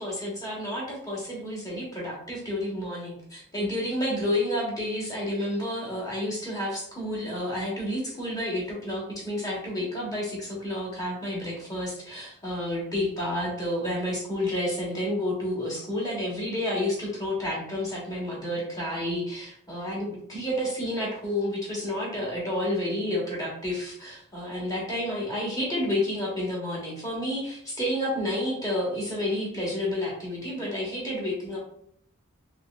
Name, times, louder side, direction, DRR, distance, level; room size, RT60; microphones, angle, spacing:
voice 1, 0.0-31.6, left 1 dB, 15° left, -4 dB, 1.2 m, -30 dB
4.0 x 3.0 x 2.4 m, 0.69 s
head